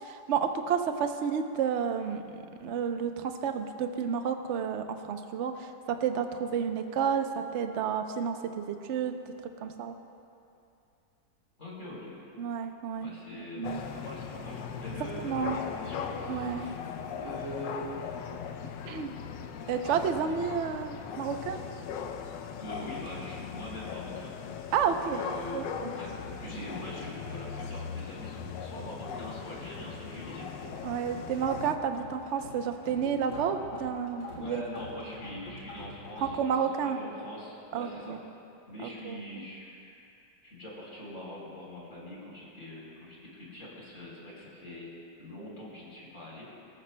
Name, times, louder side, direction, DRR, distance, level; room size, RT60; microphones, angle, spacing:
voice 1, 0.0-9.1 9.6-9.9 12.4-13.1 13.6-13.8 15.2-15.6 16.3-16.7 18.9-19.1 19.7-21.6 24.7-25.9 30.8-34.6 36.2-37.0 37.7-38.2 38.8-39.5, right 7 dB, 60° right, 6 dB, 0.8 m, -31 dB
voice 2, 11.6-12.1 13.0-16.8 17.2-17.9 19.4-19.6 22.6-24.4 24.9-25.7 25.9-30.5 34.3-38.1 38.7-40.0 40.4-44.9 45.2-46.5, left 1 dB, 45° left, -5 dB, 4.0 m, -43 dB
sound 1, 13.6-31.8, left 7 dB, 80° left, 1.3 m, -39 dB
sound 2, 26.8-27.8 28.1-28.9 29.3-36.4, left 1 dB, 65° left, 3.4 m, -47 dB
23.0 x 14.0 x 2.2 m, 2.7 s
omnidirectional pair, 1.9 m